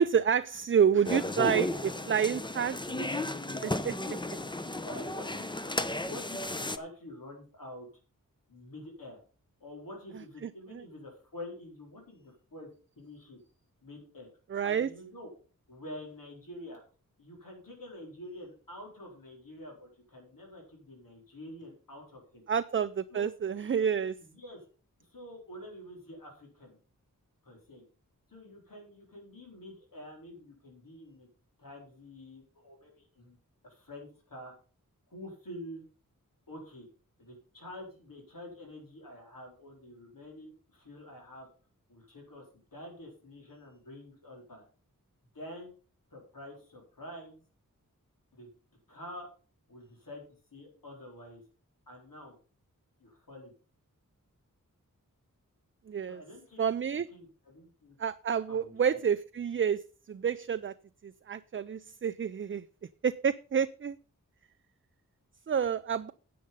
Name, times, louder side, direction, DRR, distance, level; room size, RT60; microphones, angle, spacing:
voice 1, 0.0-3.1 3.6-4.0 10.7-10.8 14.5-14.9 22.5-24.1 55.9-56.2 56.6-57.1 58.0-59.8 60.1-60.7 61.0-62.6 63.0-64.0 65.5-66.1, right 7 dB, 40° right, 12 dB, 0.4 m, -29 dB
sound 1, 1.0-6.8, left 2 dB, 15° left, 0.6 m, -34 dB
voice 2, 4.5-5.5 6.0-7.9 8.5-9.2 9.6-13.4 13.8-14.3 14.6-15.3 15.7-16.8 17.2-22.4 23.1-23.4 24.2-24.7 25.0-26.8 27.4-27.8 28.3-31.3 31.6-33.4 33.6-34.5 35.1-35.8 36.5-36.9 37.2-41.5 41.9-42.5 42.7-44.6 45.3-45.7 46.1-47.4 48.3-48.5 48.9-49.3 49.7-50.2 50.5-51.4 51.9-52.4 53.0-53.5 56.0-56.6 56.9-58.0 58.5-59.1, left 1 dB, 75° left, 0 dB, 4.2 m, -47 dB
9.8 x 7.8 x 5.4 m, 0.38 s
wide cardioid pair, 95°, 33 cm